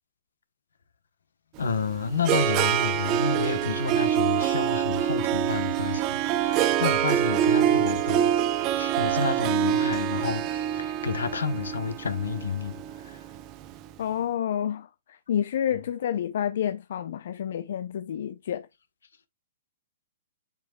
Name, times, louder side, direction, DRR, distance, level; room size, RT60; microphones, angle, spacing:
voice 1, 1.6-13.2 15.7-15.8, left 5 dB, 85° left, 1.2 m, -30 dB
Harp, 1.6-13.7, right 11 dB, 35° right, 0.7 m, -25 dB
voice 2, 14.0-18.7, left 9 dB, 65° left, 0.5 m, -29 dB
7.2 x 5.6 x 2.3 m
hypercardioid pair, 135°, 0 cm